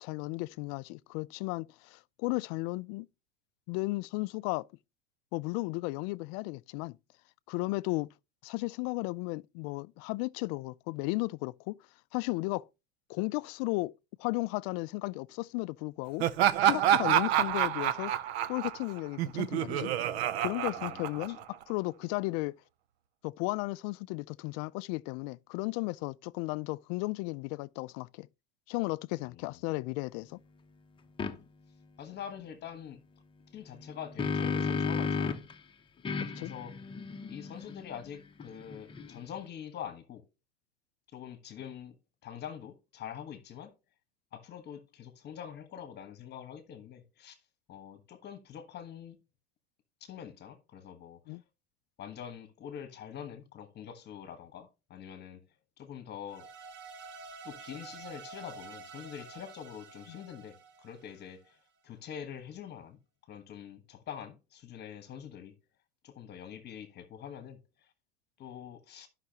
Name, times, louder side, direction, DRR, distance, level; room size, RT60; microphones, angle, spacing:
voice 1, 0.0-3.1 3.7-4.7 5.3-7.0 7.5-8.1 8.4-11.8 12.1-12.7 13.1-13.9 14.2-16.3 16.6-18.1 18.5-19.9 20.4-22.5 23.2-28.3 28.7-30.4 36.2-36.5 51.3-51.4 60.1-60.2, left 23 dB, 50° left, 0.4 m, -34 dB
Laughter, 16.2-21.6, right 11 dB, 90° right, 0.8 m, -28 dB
voice 2, 20.8-21.4 29.2-29.6 32.0-33.0 33.5-35.3 36.4-36.7 37.3-40.2 41.1-41.9 42.2-43.7 44.3-47.4 47.7-49.2 50.0-51.4 52.0-55.4 55.8-56.5 57.4-61.6 61.8-63.0 63.3-65.5 66.0-67.9 68.4-69.1, left 9 dB, 35° left, 1.3 m, -45 dB
sound 1, 31.2-31.4 33.8-35.5 36.1-39.4, left 5 dB, 15° left, 0.8 m, -34 dB
sound 2, 56.3-61.5, right 5 dB, 40° right, 1.1 m, -49 dB
12.5 x 5.7 x 2.9 m
supercardioid pair, 130°, 31 cm